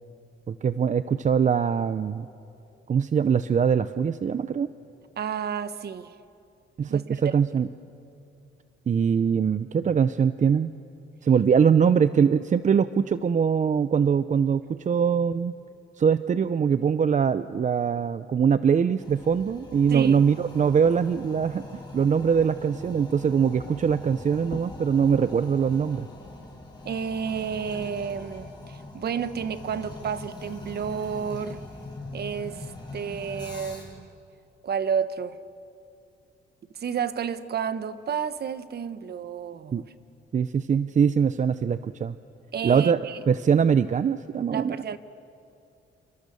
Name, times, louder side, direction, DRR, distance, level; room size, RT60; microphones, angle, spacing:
voice 1, 0.5-2.3 2.9-4.7 6.8-7.7 8.9-10.7 11.2-15.5 16.0-21.7 21.9-26.1 39.7-39.8 40.3-42.1 42.6-45.0, right 7 dB, 40° right, 13 dB, 0.6 m, -22 dB
voice 2, 5.2-6.1 6.9-7.0 7.4-7.5 19.9-20.2 26.8-31.6 32.1-34.1 34.6-35.4 36.7-39.8 42.5-43.3 44.5-45.0, right 7 dB, 55° right, 12 dB, 1.3 m, -31 dB
Toilet flush, 19.0-34.0, left 2 dB, 20° left, 7.0 m, -42 dB
30.0 x 26.5 x 6.9 m, 2.6 s
cardioid pair, 90°, 20 cm